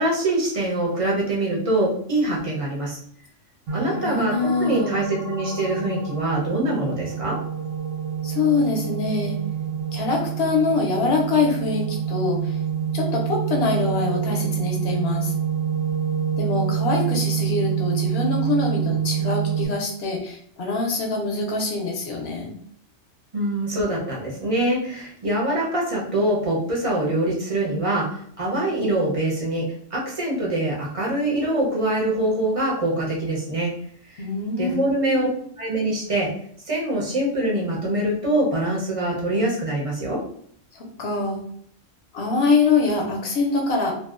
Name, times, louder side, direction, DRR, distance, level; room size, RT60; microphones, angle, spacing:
voice 1, 0.0-3.0 3.7-7.4 23.3-33.7 34.1-34.2 34.6-35.3 35.6-36.3 36.7-40.2, right 1 dB, 45° right, -4 dB, 0.4 m, -24 dB
sound 1, 3.7-19.7, right 8 dB, 75° right, 1.0 m, -27 dB
voice 2, 3.8-5.1 8.2-9.4 9.9-12.6 12.9-15.3 16.4-22.5 34.2-35.3 40.7-41.4 42.1-43.9, left 3 dB, 60° left, 0 dB, 0.8 m, -24 dB
2.6 x 2.1 x 2.3 m, 0.64 s
omnidirectional pair, 1.3 m